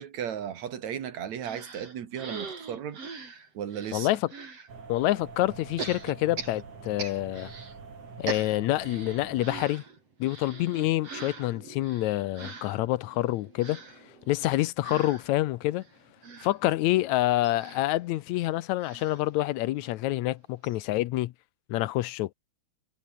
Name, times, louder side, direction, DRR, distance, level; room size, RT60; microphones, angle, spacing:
voice 1, 0.0-3.0 3.5-4.2, right 9 dB, 70° right, 3.3 m, -35 dB
sound 1, 1.4-4.7 5.8-7.8 8.0-20.0 20.3-20.4 20.6-20.8, right 4 dB, 55° right, 5.5 m, -42 dB
sound 2, 4.7-9.7, right 5 dB, 90° right, 6.3 m, -45 dB
voice 2, 4.9-7.5 8.2-9.8 10.2-13.8 14.3-15.8 16.4-21.3 21.7-22.3, left 16 dB, 80° left, 2.0 m, -27 dB
omnidirectional pair, 3.3 m